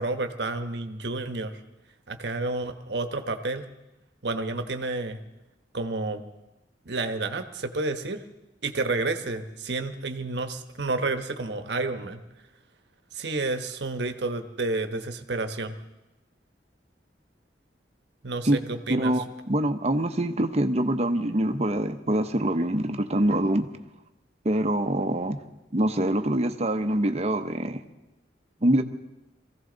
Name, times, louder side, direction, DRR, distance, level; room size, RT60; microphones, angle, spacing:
voice 1, 0.0-1.6 2.1-3.7 4.2-5.2 5.7-6.2 6.8-8.2 8.6-12.2 13.1-15.8 18.2-19.2, right 3 dB, 70° right, 7 dB, 1.1 m, -30 dB
voice 2, 18.9-23.7 24.4-25.4 25.7-27.8 28.6-28.8, right 1 dB, 35° right, 7 dB, 0.9 m, -24 dB
22.5 x 15.5 x 3.9 m, 0.99 s
head